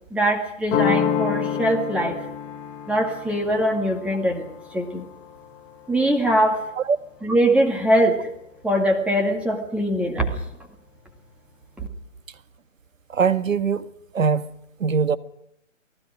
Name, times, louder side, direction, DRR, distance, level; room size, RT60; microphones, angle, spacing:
voice 1, 0.1-2.2 2.9-4.4 4.7-5.0 5.9-6.6 7.2-8.3 8.6-10.4, right 1 dB, 5° right, 2.1 m, -22 dB
sound 1, 0.7-6.3, left 7 dB, 20° left, 2.1 m, -28 dB
voice 2, 13.1-13.9 14.1-14.5 14.8-15.2, right 6 dB, 80° right, 1.6 m, -21 dB
29.5 x 18.5 x 5.0 m
hypercardioid pair, 150°, 39 cm